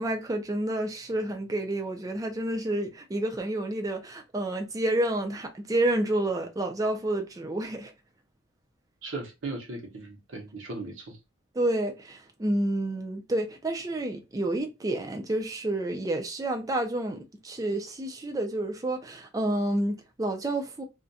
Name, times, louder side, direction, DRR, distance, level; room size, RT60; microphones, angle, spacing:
voice 1, 0.0-7.9 11.5-20.8, right 1 dB, 15° right, 0.3 m, -29 dB
voice 2, 9.0-11.2, right 2 dB, 75° right, 0.8 m, -37 dB
2.4 x 2.1 x 2.6 m
head